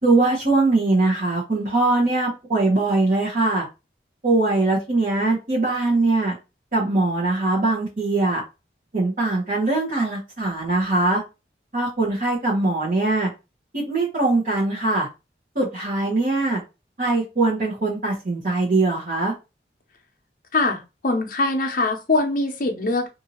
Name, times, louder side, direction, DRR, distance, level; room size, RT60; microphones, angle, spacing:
voice 1, 0.0-3.7 4.2-6.3 6.7-8.4 8.9-11.2 11.7-13.3 13.7-15.1 15.5-16.6 17.0-19.3, right 2 dB, 50° right, 1.0 m, -21 dB
voice 2, 20.5-23.1, left 2 dB, 50° left, 0.7 m, -22 dB
2.7 x 2.7 x 2.8 m
head